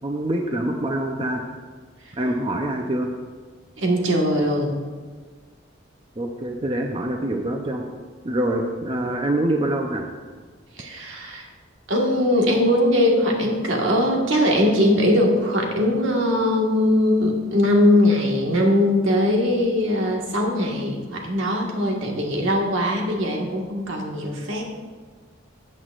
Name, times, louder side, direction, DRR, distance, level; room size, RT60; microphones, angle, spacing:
voice 1, 0.0-1.5 2.2-3.1 6.2-7.8 8.2-10.1, right 1 dB, 25° right, 2 dB, 0.6 m, -25 dB
voice 2, 3.8-4.8 10.8-11.5 11.9-24.6, left 1 dB, 70° right, 0 dB, 1.6 m, -21 dB
13.5 x 8.2 x 2.5 m, 1.5 s
head